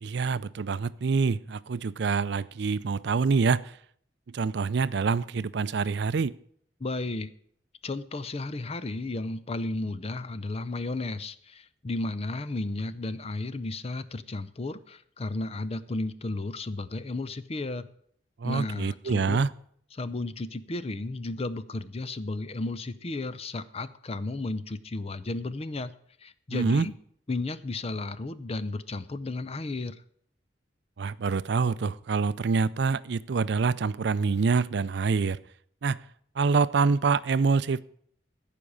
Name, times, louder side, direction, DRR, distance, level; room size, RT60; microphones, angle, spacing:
voice 1, 0.0-3.7 4.3-6.4 18.4-19.5 26.5-26.9 31.0-35.4 35.8-36.0 36.4-37.8, right 4 dB, 65° right, 0.5 m, -26 dB
voice 2, 6.8-7.3 7.8-17.9 18.4-19.4 19.9-25.9 26.2-26.9 27.3-30.0, left 2 dB, 35° left, 0.6 m, -33 dB
14.5 x 5.1 x 8.5 m
head